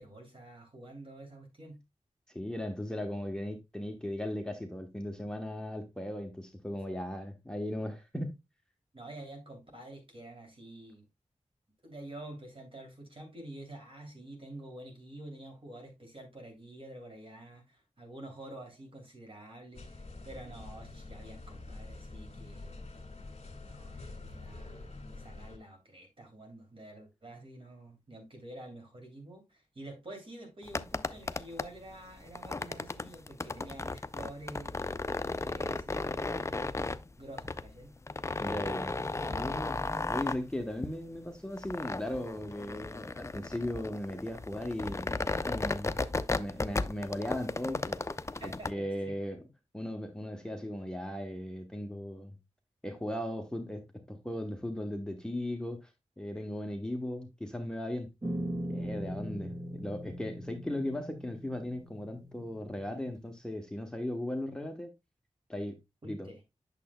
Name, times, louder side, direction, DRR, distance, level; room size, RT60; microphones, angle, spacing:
voice 1, 0.0-1.8 8.9-11.1 11.8-22.8 23.6-34.8 35.4-36.7 37.2-38.0 48.4-49.2 66.0-66.4, right 1 dB, 45° right, 3.0 m, -48 dB
voice 2, 2.3-8.4 38.4-38.9 39.3-39.8 40.1-46.0 46.3-48.1 48.4-49.4 49.7-52.3 52.8-55.9 56.2-58.1 58.7-64.9 65.5-65.8 66.0-66.3, left 1 dB, 5° left, 1.1 m, -37 dB
sound 1, 19.7-25.6, left 2 dB, 55° left, 2.0 m, -46 dB
sound 2, 30.6-48.7, left 3 dB, 25° left, 0.4 m, -35 dB
sound 3, 58.2-63.2, equal, 30° right, 1.6 m, -40 dB
8.5 x 6.8 x 2.2 m
wide cardioid pair, 85°, 12 cm